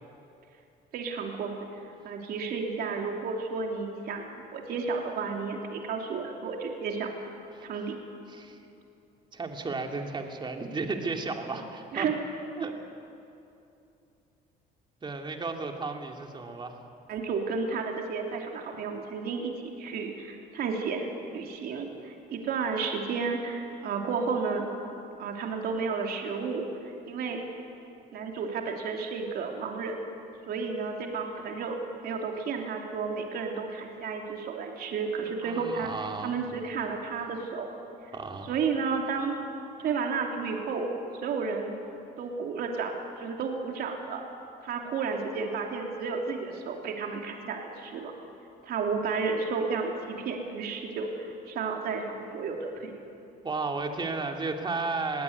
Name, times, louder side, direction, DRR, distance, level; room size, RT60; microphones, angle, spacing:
voice 1, 0.9-1.5 2.0-7.1 7.6-8.0 11.9-12.1 17.1-24.7 25.2-27.4 28.1-30.0 30.5-31.8 32.0-35.9 36.2-37.7 38.1-38.2 38.4-39.3 39.8-40.9 41.2-41.7 42.2-44.2 44.6-48.1 48.6-53.0, right 5 dB, 65° right, 1 dB, 3.1 m, -32 dB
voice 2, 9.3-12.1 12.6-12.7 15.0-16.8 35.4-36.5 38.1-38.5 53.4-55.2, right 3 dB, 25° right, 3 dB, 2.5 m, -33 dB
20.5 x 16.5 x 9.6 m, 2.7 s
cardioid pair, 110°, 17 cm